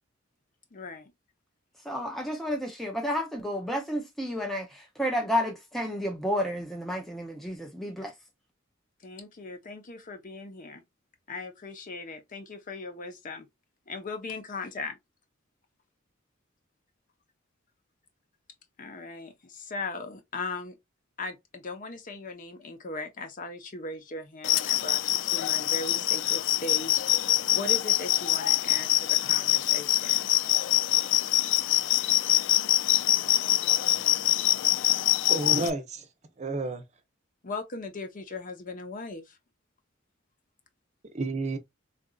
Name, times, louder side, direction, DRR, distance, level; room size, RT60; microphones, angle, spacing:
voice 1, 0.7-1.1 9.0-10.8 11.3-13.5 13.9-15.0 18.8-20.8 21.2-30.2 37.4-39.4, left 3 dB, 45° left, 0.7 m, -38 dB
voice 2, 1.9-8.1, equal, ahead, 0.5 m, -31 dB
sound 1, 24.4-35.7, left 14 dB, 65° left, 0.3 m, -24 dB
voice 3, 35.3-36.1 36.4-36.8 41.1-41.6, right 2 dB, 35° right, 0.7 m, -30 dB
3.9 x 2.5 x 2.2 m
head